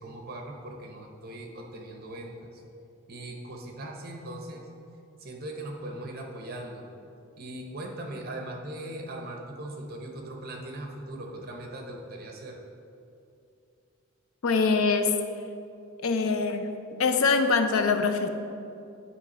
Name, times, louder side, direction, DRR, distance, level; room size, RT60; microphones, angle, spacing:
voice 1, 0.0-2.6 3.1-4.7 5.2-6.8 7.3-12.6, right 1 dB, 50° right, 2 dB, 0.9 m, -39 dB
voice 2, 14.4-15.2 16.0-16.7 17.0-18.3, left 4 dB, 85° left, 8 dB, 0.5 m, -23 dB
9.5 x 3.3 x 5.4 m, 2.6 s
head